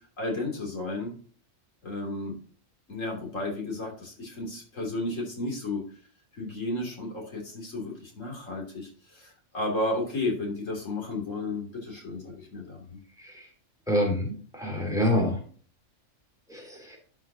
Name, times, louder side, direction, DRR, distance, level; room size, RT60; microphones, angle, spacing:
voice 1, 0.2-1.1 1.8-2.3 2.9-5.8 6.3-13.0, left 2 dB, 90° left, -1 dB, 3.3 m, -33 dB
voice 2, 13.9-15.4 16.5-17.0, left 1 dB, 5° right, 0 dB, 3.1 m, -27 dB
12.0 x 5.7 x 2.8 m, 0.43 s
omnidirectional pair, 1.3 m